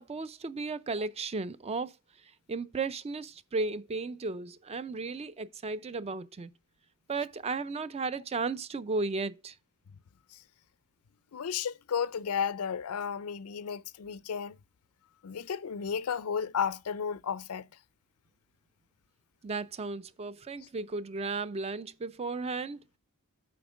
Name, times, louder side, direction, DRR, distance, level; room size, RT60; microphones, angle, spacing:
voice 1, 0.0-1.9 2.5-6.5 7.1-9.5 19.4-22.8, right 3 dB, 30° right, 0.4 m, -34 dB
voice 2, 11.3-14.6 15.2-17.7, left 7 dB, 75° left, 0.5 m, -33 dB
8.6 x 4.3 x 4.9 m
head